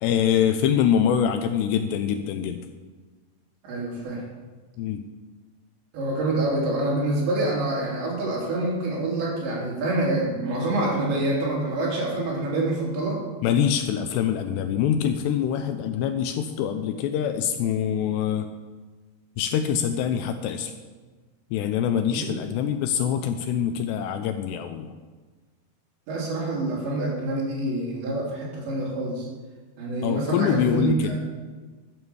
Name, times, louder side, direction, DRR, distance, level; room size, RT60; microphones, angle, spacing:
voice 1, 0.0-2.6 4.8-5.0 13.4-18.5 19.4-20.7 21.5-24.9 30.0-31.1, left 9 dB, 80° left, 8 dB, 2.8 m, -24 dB
voice 2, 3.6-4.2 5.9-13.2 22.1-22.5 26.1-29.3 29.8-31.2, right 2 dB, 80° right, -4 dB, 5.6 m, -26 dB
13.0 x 9.0 x 7.0 m, 1.4 s
omnidirectional pair, 5.0 m